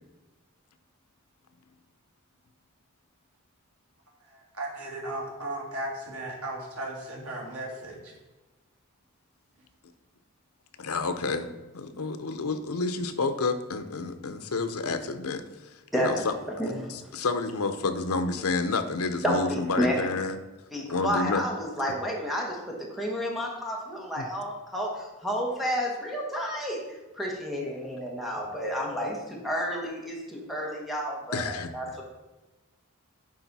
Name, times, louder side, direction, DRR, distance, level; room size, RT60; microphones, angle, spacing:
voice 1, 4.2-8.1, right 1 dB, 90° right, -2 dB, 2.0 m, -36 dB
voice 2, 10.8-11.5 11.7-15.7 16.0-16.3 16.9-20.4 20.9-21.4 24.2-24.3 31.3-32.0, left 3 dB, 85° left, 9 dB, 0.7 m, -29 dB
voice 3, 15.9-16.3 16.6-17.1 19.2-20.1 20.7-32.0, equal, ahead, -2 dB, 1.2 m, -31 dB
10.5 x 4.1 x 4.1 m, 1.2 s
head